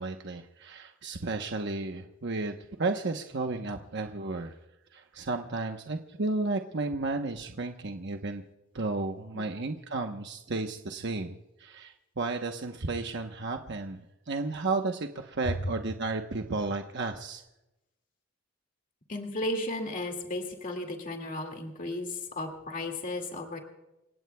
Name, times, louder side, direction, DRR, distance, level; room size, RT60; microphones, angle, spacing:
voice 1, 0.0-4.5 4.9-8.4 8.7-17.4, right 3 dB, 60° right, 4 dB, 1.0 m, -33 dB
voice 2, 19.1-23.6, left 1 dB, 40° left, 3 dB, 2.2 m, -34 dB
29.5 x 17.0 x 2.3 m, 0.93 s
head